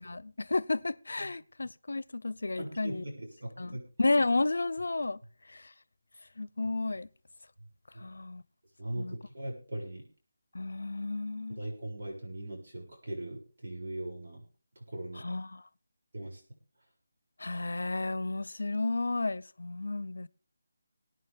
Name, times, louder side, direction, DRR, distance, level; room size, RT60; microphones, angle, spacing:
voice 1, 0.0-3.0 3.6-5.2 5.5-5.6 6.4-7.1 8.0-8.4 9.0-9.1 10.5-11.6 15.2-15.6 17.4-20.3, left 2 dB, 85° left, 0.7 m, -32 dB
voice 2, 2.6-3.8 7.9-8.0 8.8-10.0 11.5-14.4 14.9-15.3 16.1-16.4, right 1 dB, 55° right, 7.1 m, -39 dB
22.0 x 9.5 x 3.6 m
figure-of-eight pair, 175°, 0 cm